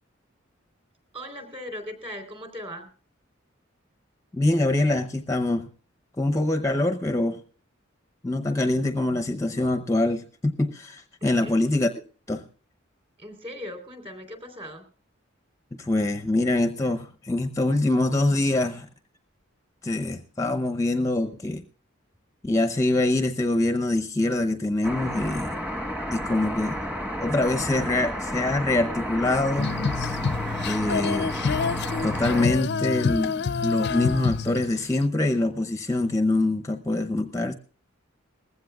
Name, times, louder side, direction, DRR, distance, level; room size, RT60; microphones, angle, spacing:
voice 1, 1.1-2.9 11.2-11.6 13.2-14.8, equal, 25° right, 7 dB, 3.6 m, -38 dB
voice 2, 4.3-5.7 6.2-7.4 8.2-11.9 12.3-12.4 15.8-18.9 19.8-21.6 22.4-25.6 26.1-26.8 27.2-29.7 30.6-31.3 32.0-37.5, left 2 dB, 15° left, 8 dB, 0.7 m, -24 dB
sound 1, 24.8-32.5, equal, 5° right, 1.3 m, -31 dB
Female singing, 29.6-35.0, left 5 dB, 55° left, 0.5 m, -27 dB
20.0 x 15.5 x 2.3 m, 0.42 s
head